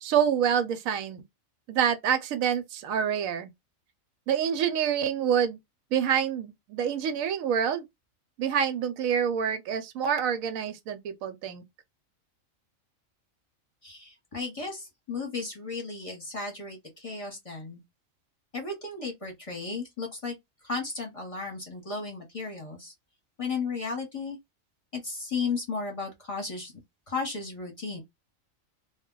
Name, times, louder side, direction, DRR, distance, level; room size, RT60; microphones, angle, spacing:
voice 1, 0.0-1.2 1.7-3.5 4.3-5.6 5.9-7.8 8.4-11.6, right 8 dB, 85° right, 1.0 m, -27 dB
voice 2, 13.8-17.8 18.5-20.4 20.6-22.9 23.4-24.4 24.9-26.7 27.1-28.0, left 4 dB, 30° left, 0.9 m, -34 dB
2.2 x 2.2 x 3.6 m
omnidirectional pair, 1.4 m